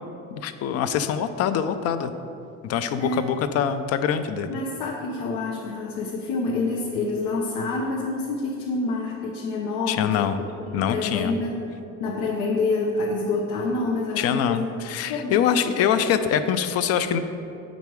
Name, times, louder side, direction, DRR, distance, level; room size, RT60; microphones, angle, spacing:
voice 1, 0.3-2.1 2.6-4.5 9.9-10.4 10.7-11.3 14.2-17.2, left 8 dB, 55° left, 11 dB, 0.4 m, -24 dB
voice 2, 3.0-3.3 4.5-10.3 10.7-11.6 12.0-14.7 15.1-15.7, left 3 dB, 90° left, -2 dB, 0.9 m, -27 dB
7.4 x 5.3 x 4.7 m, 2.6 s
cardioid pair, 160°, 31 cm